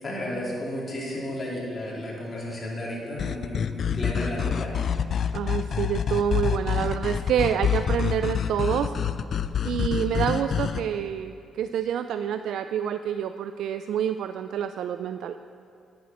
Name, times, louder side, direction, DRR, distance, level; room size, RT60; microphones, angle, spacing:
voice 1, 0.0-4.8, left 1 dB, 35° left, -4 dB, 3.4 m, -33 dB
sound 1, 3.2-10.8, left 8 dB, 55° left, 0.4 m, -27 dB
voice 2, 5.3-8.9 9.6-15.4, right 9 dB, 75° right, 9 dB, 0.3 m, -27 dB
11.0 x 8.6 x 6.0 m, 2.4 s
cardioid pair, 90°, 0 cm